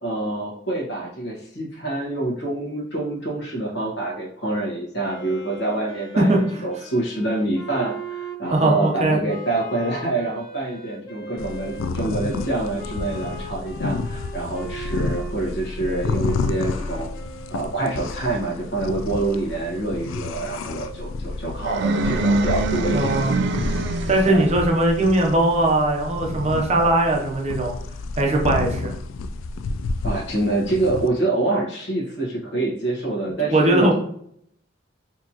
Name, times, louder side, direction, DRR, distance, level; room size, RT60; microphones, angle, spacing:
voice 1, 0.0-6.3 6.6-17.1 17.5-23.1 24.3-24.5 30.0-33.9, right 2 dB, 60° left, -2 dB, 1.3 m, -26 dB
Wind instrument woodwind instrument, 5.0-18.4, right 3 dB, 20° left, 1.2 m, -39 dB
voice 2, 6.2-6.6 8.5-9.2 22.9-23.3 24.1-27.7 28.2-28.9 33.4-33.9, right 2 dB, 35° right, 1 dB, 0.7 m, -19 dB
sound 1, 11.4-31.1, left 3 dB, 90° left, 0.3 m, -30 dB
sound 2, 21.6-24.5, right 2 dB, 60° right, 0.3 m, -24 dB
4.2 x 2.9 x 2.9 m, 0.67 s
head